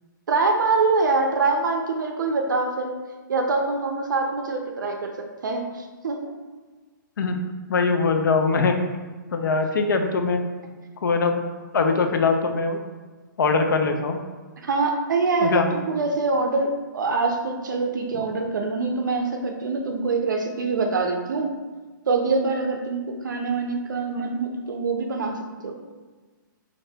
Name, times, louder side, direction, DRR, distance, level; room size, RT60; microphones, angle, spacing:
voice 1, 0.3-2.9 3.3-5.1 5.4-6.4 14.6-21.5 22.1-25.7, right 3 dB, 65° right, 3 dB, 0.4 m, -24 dB
voice 2, 7.7-8.7 9.3-10.4 11.0-11.4 11.7-12.8 13.4-14.2 15.4-15.7, left 4 dB, 75° left, 5 dB, 0.4 m, -21 dB
2.7 x 2.6 x 3.2 m, 1.4 s
hypercardioid pair, 180°, 11 cm